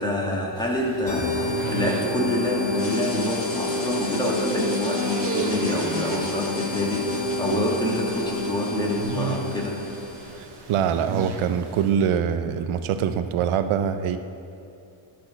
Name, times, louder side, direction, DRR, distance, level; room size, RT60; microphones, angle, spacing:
voice 1, 0.0-9.8, left 1 dB, 10° left, -3 dB, 1.5 m, -27 dB
sound 1, 0.6-11.9, right 4 dB, 55° right, 0.9 m, -36 dB
sound 2, 1.1-10.4, left 2 dB, 60° left, 1.7 m, -29 dB
sound 3, 2.8-10.8, left 2 dB, 25° left, 1.5 m, -40 dB
voice 2, 10.4-14.2, right 8 dB, 90° right, 10 dB, 0.6 m, -24 dB
12.0 x 4.3 x 6.3 m, 2.7 s
cardioid pair, 115°, 48 cm